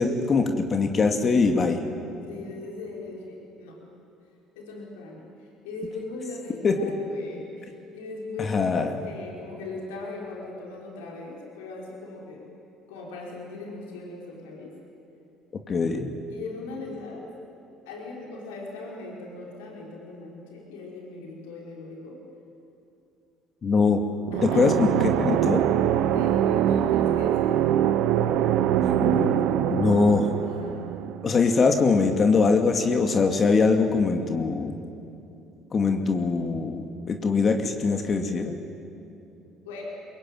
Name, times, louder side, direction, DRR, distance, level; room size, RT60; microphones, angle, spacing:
voice 1, 0.0-1.8 6.6-6.9 8.4-8.9 15.7-16.1 23.6-24.0 24.4-25.6 29.0-29.5 29.7-30.3 31.2-34.7 35.7-38.6, left 4 dB, 40° left, 5 dB, 2.4 m, -22 dB
voice 2, 2.3-3.8 4.6-12.5 12.9-14.7 16.3-17.3 17.9-22.2 24.3-24.9 26.0-27.7 30.4-30.9 39.7-39.8, left 3 dB, 85° left, -2 dB, 5.3 m, -39 dB
sound 1, 24.3-31.9, right 11 dB, 70° right, 1.1 m, -23 dB
22.5 x 22.0 x 9.2 m, 2.7 s
supercardioid pair, 75°, 0 cm